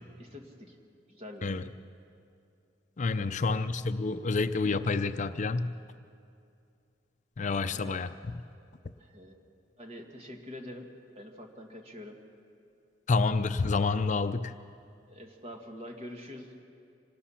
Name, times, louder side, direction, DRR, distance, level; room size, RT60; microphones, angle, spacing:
voice 1, 0.2-0.8 1.1-1.6 3.2-3.6 7.7-8.2 9.0-9.4 9.8-12.2 15.1-16.5, left 1 dB, 35° right, 2 dB, 2.0 m, -46 dB
voice 2, 3.0-5.7 7.4-8.1 13.1-14.5, left 3 dB, 40° left, 11 dB, 0.5 m, -28 dB
26.0 x 19.0 x 5.8 m, 2.5 s
head